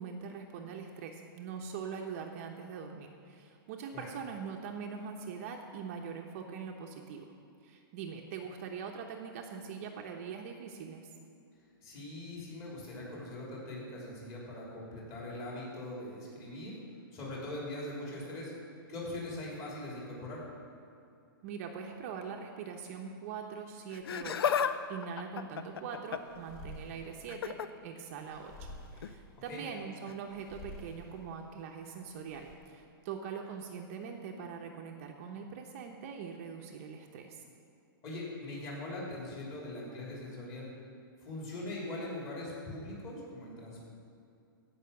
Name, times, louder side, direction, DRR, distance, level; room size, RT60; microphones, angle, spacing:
voice 1, 0.0-7.3 7.6-11.1 21.4-27.6 27.8-37.4, right 6 dB, 35° right, 2 dB, 0.8 m, -42 dB
voice 2, 11.8-16.8 17.1-18.5 18.9-20.4 29.5-29.6 38.0-40.7 41.2-43.9, left 1 dB, 25° left, -5 dB, 3.4 m, -41 dB
Laughter, 23.9-24.7 25.0-26.4 27.3-27.7 29.0-29.2 30.1-30.2, left 8 dB, 85° left, 0.7 m, -32 dB
sound 1, 25.6-32.5, left 1 dB, 45° left, 2.6 m, -51 dB
16.5 x 5.7 x 7.0 m, 2.6 s
hypercardioid pair, 165°, 12 cm